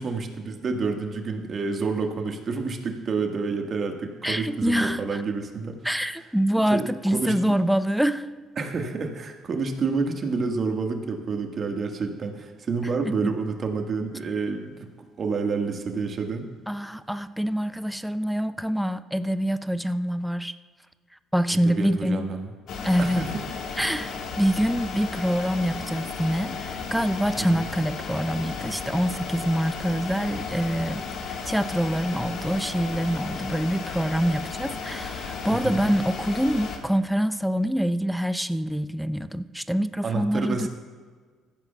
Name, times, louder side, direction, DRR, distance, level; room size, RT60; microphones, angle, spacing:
voice 1, 0.0-5.8 6.7-6.9 7.1-7.6 8.6-14.9 15.2-16.5 21.5-22.5 23.0-23.4 27.4-27.7 35.5-35.8 40.0-40.7, right 4 dB, 45° right, 4 dB, 1.6 m, -29 dB
voice 2, 4.2-5.2 5.8-8.3 16.7-20.5 21.3-22.2 22.8-23.2 23.8-40.7, equal, ahead, 13 dB, 0.5 m, -25 dB
sound 1, 22.7-36.8, left 5 dB, 65° left, 1.5 m, -34 dB
16.0 x 14.0 x 2.3 m, 1.5 s
hypercardioid pair, 55°, 0 cm